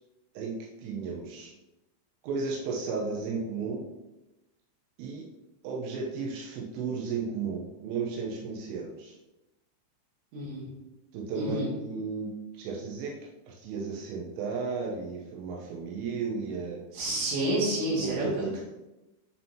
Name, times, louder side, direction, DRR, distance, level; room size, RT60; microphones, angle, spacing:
voice 1, 0.4-1.5 2.2-3.9 5.0-5.2 5.6-9.2 11.1-13.1 13.5-16.8 18.0-18.7, right 4 dB, 90° right, -2 dB, 3.5 m, -34 dB
voice 2, 10.3-10.7 11.4-11.7 16.9-18.4, right 1 dB, 60° right, -6 dB, 4.2 m, -29 dB
9.9 x 4.5 x 2.8 m, 1.0 s
omnidirectional pair, 5.7 m